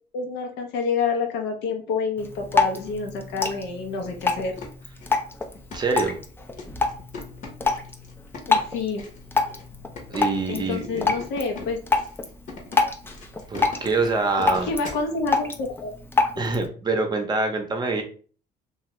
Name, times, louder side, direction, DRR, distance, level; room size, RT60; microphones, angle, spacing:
voice 1, 0.1-4.6 8.5-9.0 10.5-11.8 14.4-15.9 16.4-16.5, left 4 dB, 85° left, 3 dB, 0.8 m, -28 dB
Drip, 2.2-16.7, left 4 dB, 15° left, 0.4 m, -28 dB
sound 1, 4.5-15.1, left 3 dB, 50° left, 1.0 m, -42 dB
voice 2, 5.7-6.2 10.1-11.1 13.5-14.7 16.4-18.0, right 3 dB, 25° right, 3 dB, 0.7 m, -25 dB
2.8 x 2.4 x 3.0 m, 0.42 s
cardioid pair, 110°, 17 cm